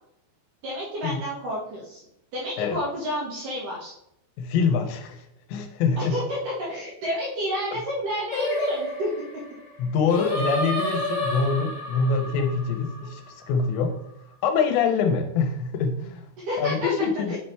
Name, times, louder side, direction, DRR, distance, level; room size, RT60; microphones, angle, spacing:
voice 1, 0.6-2.0 2.3-3.9 6.0-6.4 6.7-9.1 13.0-13.1 16.4-16.9 17.3-17.4, equal, 65° right, -6 dB, 2.3 m, -30 dB
voice 2, 4.4-6.2 9.8-13.9 14.4-16.3 16.6-17.4, left 5 dB, 80° left, 5 dB, 2.8 m, -25 dB
Singing, 8.3-13.6, equal, 40° left, 0.6 m, -30 dB
9.4 x 3.2 x 4.4 m, 0.77 s
omnidirectional pair, 5.3 m